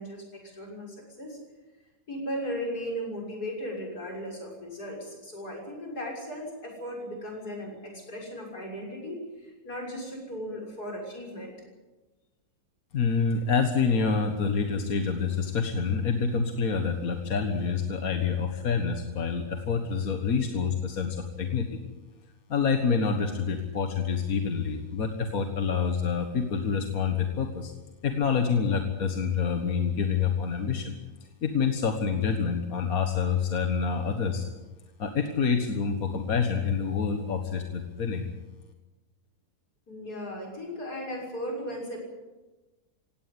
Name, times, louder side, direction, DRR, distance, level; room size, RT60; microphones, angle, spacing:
voice 1, 0.0-1.4 2.1-11.5 39.9-42.0, equal, 90° left, -1 dB, 7.0 m, -37 dB
voice 2, 12.9-21.8 22.5-27.7 28.0-30.9 31.4-34.4 35.0-38.2, left 5 dB, 65° left, 5 dB, 1.9 m, -27 dB
18.0 x 17.0 x 9.7 m, 1.2 s
omnidirectional pair, 1.6 m